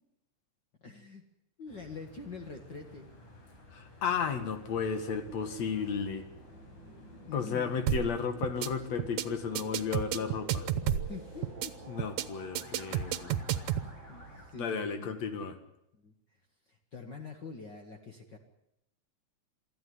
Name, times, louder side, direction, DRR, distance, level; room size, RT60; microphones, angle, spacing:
voice 1, 0.8-1.2 1.6-3.1 7.3-7.8 10.7-11.9 14.1-15.1 15.9-16.1 16.7-18.4, left 4 dB, 40° left, 3 dB, 2.3 m, -45 dB
sound 1, 1.7-14.5, left 1 dB, 90° left, 6.3 m, -53 dB
voice 2, 3.7-6.3 7.3-10.7 11.9-13.4 14.6-15.6, left 6 dB, 65° left, 8 dB, 3.1 m, -33 dB
sound 2, 5.9-15.4, right 6 dB, 45° right, 2.0 m, -53 dB
sound 3, 7.9-8.1 8.4-8.7 9.0-9.2 9.5-11.1 11.4-11.7 12.0-12.2 12.5-13.9, right 10 dB, 75° right, 2.3 m, -31 dB
24.0 x 14.0 x 9.7 m, 0.82 s
omnidirectional pair, 3.4 m